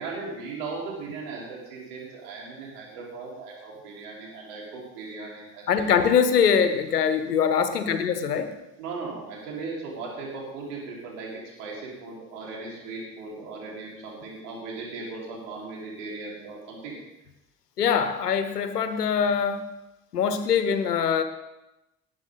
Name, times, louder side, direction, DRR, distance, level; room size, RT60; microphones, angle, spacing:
voice 1, 0.0-5.9 8.8-11.3 11.6-16.9, right 4 dB, 75° right, -4 dB, 4.5 m, -37 dB
voice 2, 5.7-8.5 17.8-19.7 20.1-21.2, left 7 dB, 90° left, 10 dB, 1.0 m, -23 dB
19.0 x 9.3 x 4.0 m, 0.95 s
figure-of-eight pair, 50°, 46 cm